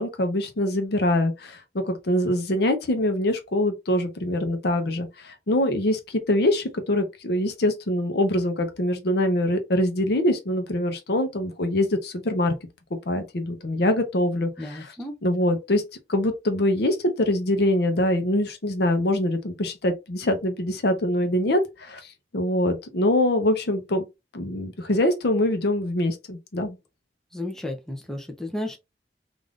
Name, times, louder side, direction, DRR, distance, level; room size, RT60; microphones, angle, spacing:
voice 1, 0.0-12.5 13.1-14.9 15.2-15.8 16.1-24.1 24.3-26.8, left 1 dB, 65° left, 0.7 m, -24 dB
voice 2, 14.6-15.1 27.3-28.8, left 1 dB, 5° left, 0.5 m, -33 dB
3.4 x 2.5 x 2.4 m
head